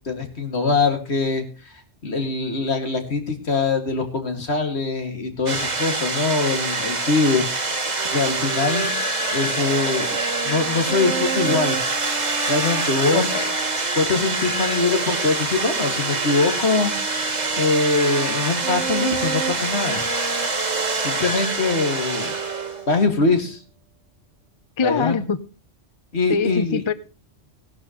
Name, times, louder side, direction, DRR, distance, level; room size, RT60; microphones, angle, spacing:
voice 1, 0.1-1.4 2.0-9.0 9.3-10.2 10.4-11.8 12.5-13.2 14.0-16.9 17.6-20.0 21.0-22.4 22.9-23.6 24.8-25.2 26.1-26.8, left 3 dB, 60° left, 2.4 m, -23 dB
sound 1, 5.5-23.0, right 3 dB, 35° right, 1.5 m, -25 dB
sound 2, 8.0-23.1, right 6 dB, 75° right, 1.5 m, -33 dB
voice 2, 13.1-13.5 24.8-25.4 26.3-26.9, left 5 dB, 35° left, 0.5 m, -23 dB
18.0 x 11.5 x 3.0 m
omnidirectional pair, 1.3 m